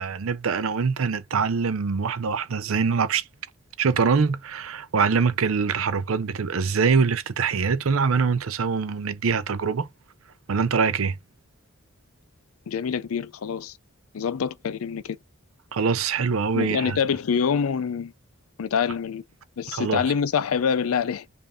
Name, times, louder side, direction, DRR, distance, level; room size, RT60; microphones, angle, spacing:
voice 1, 0.0-3.3 3.8-9.9 10.5-11.2 15.7-17.0 19.7-20.0, right 5 dB, 75° right, 0.6 m, -24 dB
voice 2, 12.7-13.8 14.1-15.2 16.5-18.1 18.6-19.2 19.6-21.3, left 6 dB, 85° left, 0.4 m, -25 dB
5.4 x 2.6 x 3.6 m
head